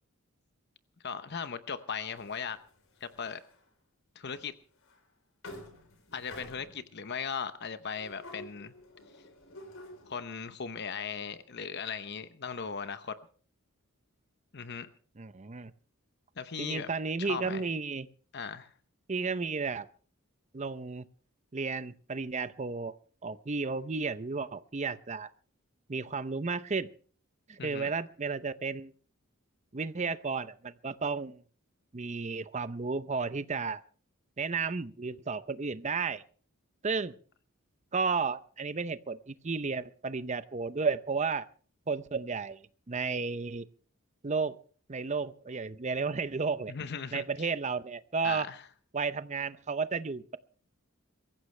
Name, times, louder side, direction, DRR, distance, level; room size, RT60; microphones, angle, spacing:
voice 1, 1.0-2.6 3.0-3.4 4.1-4.5 6.1-8.7 10.1-13.2 14.5-14.9 16.4-16.9 17.2-17.6 18.3-18.7 27.6-27.9 46.7-47.5 48.2-48.6, left 6 dB, 55° left, 0.8 m, -38 dB
sound 1, 2.2-3.6 4.4-4.5 4.8-5.0 5.4-6.9 8.0-10.3, left 1 dB, 75° left, 4.0 m, -50 dB
voice 2, 15.2-15.7 16.6-18.1 19.1-19.9 20.5-21.0 21.5-22.9 23.2-25.3 25.9-26.9 27.5-28.9 29.7-31.4 31.9-33.8 34.4-36.2 36.8-37.1 37.9-41.5 41.9-42.6 42.9-43.7 44.2-44.6 44.9-46.7 47.1-48.5 48.9-50.4, right 4 dB, 35° right, 0.7 m, -33 dB
23.0 x 14.5 x 3.3 m
head